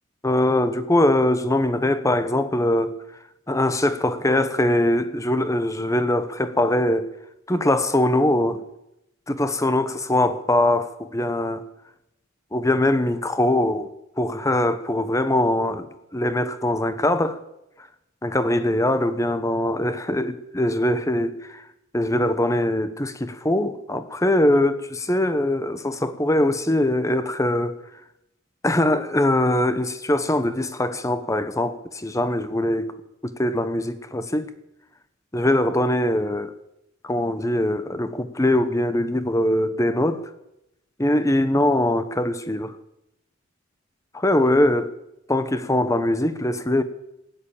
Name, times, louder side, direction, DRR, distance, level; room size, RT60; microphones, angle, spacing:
voice 1, 0.2-3.0 3.5-7.1 7.5-8.6 9.3-11.7 12.5-13.9 14.2-17.4 18.2-21.6 21.9-27.8 28.6-32.9 33.2-34.5 35.3-36.5 37.0-40.3 41.0-42.8 44.1-44.9 45.3-46.8, left 1 dB, 15° left, 1.0 m, -22 dB
16.0 x 9.6 x 8.7 m
head